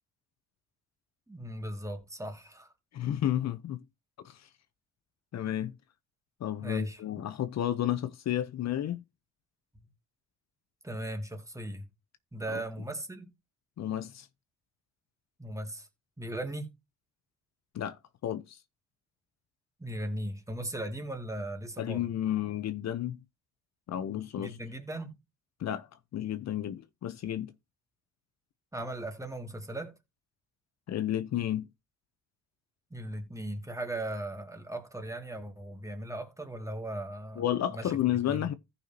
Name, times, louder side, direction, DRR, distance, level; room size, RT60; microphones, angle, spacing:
voice 1, 1.3-2.7 6.6-7.0 9.8-9.9 10.8-11.9 12.3-13.3 15.4-15.9 16.2-16.7 19.8-22.1 24.4-25.2 28.7-30.0 32.9-37.4 37.7-37.9 38.3-38.5, right 1 dB, 10° right, 2.3 m, -38 dB
voice 2, 2.9-3.8 4.2-4.4 5.3-5.7 6.4-9.0 12.5-12.6 13.8-14.3 17.7-18.6 21.8-23.2 23.9-24.6 25.6-25.9 26.1-27.5 30.9-31.7 37.4-38.5, left 11 dB, 60° left, 0.8 m, -32 dB
15.0 x 5.6 x 2.8 m
cardioid pair, 90°, 30 cm